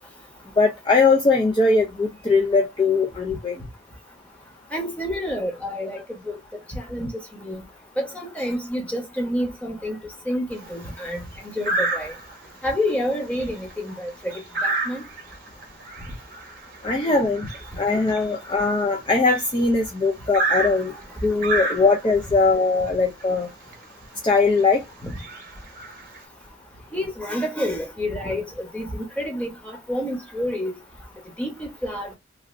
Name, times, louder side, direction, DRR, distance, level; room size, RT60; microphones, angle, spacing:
voice 1, 0.6-3.6 16.8-17.5 17.8-20.9 21.2-23.5 24.2-24.8, left 3 dB, 25° left, 0.4 m, -20 dB
voice 2, 4.7-6.4 6.7-7.1 7.4-7.6 8.0-10.0 10.3-11.2 11.5-12.1 12.6-15.0 25.0-25.1 26.9-30.8 31.4-32.2, left 1 dB, 10° left, 0.9 m, -28 dB
sound 1, 10.5-10.9 11.6-12.5 12.9-13.1 13.3-19.6 20.3-22.2 23.2-23.3 23.7-23.8 24.4-24.6 25.1-26.2, right 2 dB, 50° right, 0.9 m, -30 dB
3.0 x 2.6 x 2.5 m
head